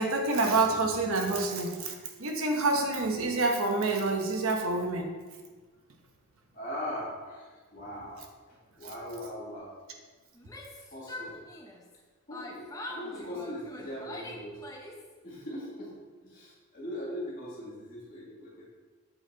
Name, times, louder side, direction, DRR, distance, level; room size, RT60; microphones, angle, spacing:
voice 1, 0.0-5.1, right 3 dB, 80° right, 3 dB, 1.0 m, -27 dB
voice 2, 6.5-9.7 10.9-11.5 12.3-14.6 15.2-18.6, equal, 40° left, -6 dB, 1.8 m, -40 dB
Yell, 10.3-12.0 12.3-15.1, left 1 dB, 15° left, 0.7 m, -43 dB
7.7 x 4.4 x 4.1 m, 1.3 s
head